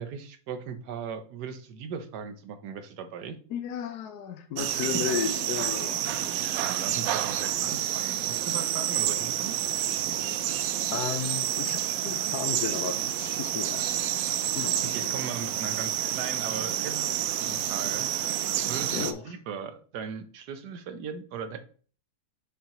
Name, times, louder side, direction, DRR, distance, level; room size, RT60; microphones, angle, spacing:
voice 1, 0.0-3.4 4.8-4.9 6.4-9.6 14.9-21.6, right 6 dB, 90° right, 9 dB, 1.4 m, -38 dB
voice 2, 3.5-6.1 10.9-14.0 14.5-15.1 18.9-19.3, left 8 dB, 80° left, 7 dB, 1.2 m, -34 dB
sound 1, 4.6-19.1, right 11 dB, 70° right, 1.0 m, -29 dB
6.9 x 5.6 x 3.0 m, 0.41 s
omnidirectional pair, 1.7 m